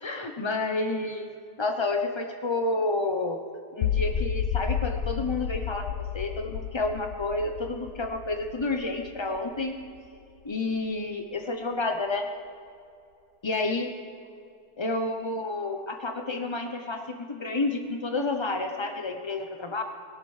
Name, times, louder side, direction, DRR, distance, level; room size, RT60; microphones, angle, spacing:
voice 1, 0.0-1.3 1.6-3.4 3.7-9.8 10.4-12.3 13.4-13.9 14.8-19.8, left 2 dB, 45° left, 4 dB, 0.3 m, -30 dB
sound 1, 3.8-9.9, left 8 dB, 70° left, 0.9 m, -31 dB
21.0 x 17.0 x 3.3 m, 2.5 s
omnidirectional pair, 1.8 m